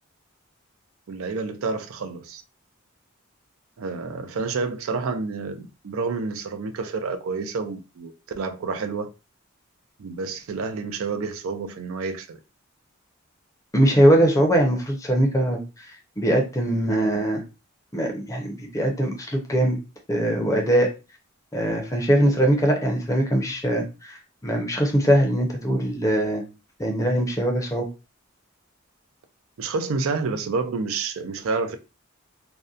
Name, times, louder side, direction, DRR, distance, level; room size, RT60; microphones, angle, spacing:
voice 1, 1.1-2.4 3.8-8.1 8.4-9.1 10.0-12.4 29.6-31.8, right 4 dB, 80° right, 0.4 m, -29 dB
voice 2, 13.7-15.6 16.2-17.4 17.9-19.8 20.1-20.9 21.5-24.2 24.4-26.4 26.8-27.9, right 1 dB, 15° left, 0.5 m, -21 dB
2.6 x 2.1 x 2.4 m
head